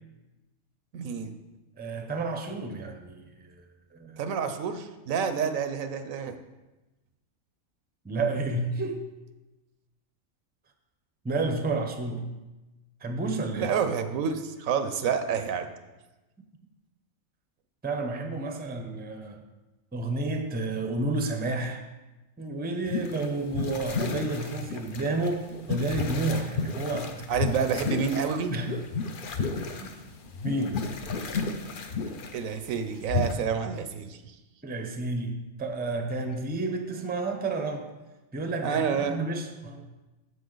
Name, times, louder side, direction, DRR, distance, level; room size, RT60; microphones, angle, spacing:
voice 1, 0.9-1.3 4.2-6.4 13.5-15.7 27.3-28.5 32.3-34.4 38.6-39.2, right 6 dB, 80° right, 9 dB, 1.1 m, -28 dB
voice 2, 1.8-3.6 3.9-4.2 8.0-9.1 11.2-12.3 13.0-13.7 17.8-19.4 19.9-21.8 22.4-27.2 28.5-28.8 29.8-30.0 30.4-30.8 34.6-37.9 38.3-39.9, right 2 dB, 10° right, 5 dB, 0.5 m, -31 dB
sound 1, 22.9-33.3, left 4 dB, 50° left, 0.7 m, -33 dB
14.0 x 5.5 x 3.9 m, 1.1 s
omnidirectional pair, 1.4 m